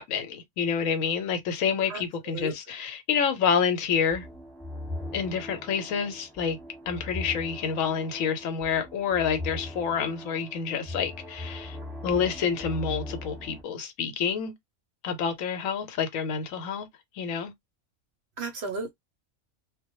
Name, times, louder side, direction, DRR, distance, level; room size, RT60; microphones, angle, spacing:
voice 1, 0.0-4.3 5.1-6.6 6.9-11.8 12.0-14.5 15.0-16.9 17.2-17.5, left 6 dB, 75° left, 1.0 m, -28 dB
voice 2, 1.9-2.5 18.4-18.9, right 3 dB, 65° right, 0.7 m, -35 dB
sound 1, 4.1-13.6, left 1 dB, ahead, 1.0 m, -39 dB
2.1 x 2.1 x 2.9 m
omnidirectional pair, 1.4 m